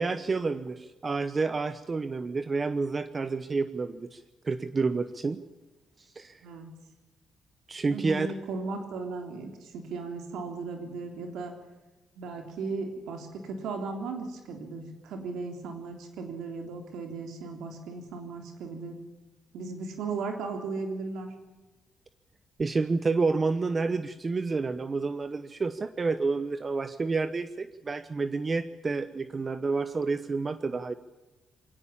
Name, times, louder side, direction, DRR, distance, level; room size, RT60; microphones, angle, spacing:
voice 1, 0.0-5.4 6.0-6.4 7.7-8.3 22.6-30.9, right 4 dB, 30° right, 12 dB, 0.9 m, -29 dB
voice 2, 7.9-11.5 12.2-19.0 19.5-21.3, right 4 dB, 85° right, 4 dB, 3.5 m, -36 dB
23.5 x 17.5 x 8.7 m, 1.1 s
cardioid pair, 120°, 0 cm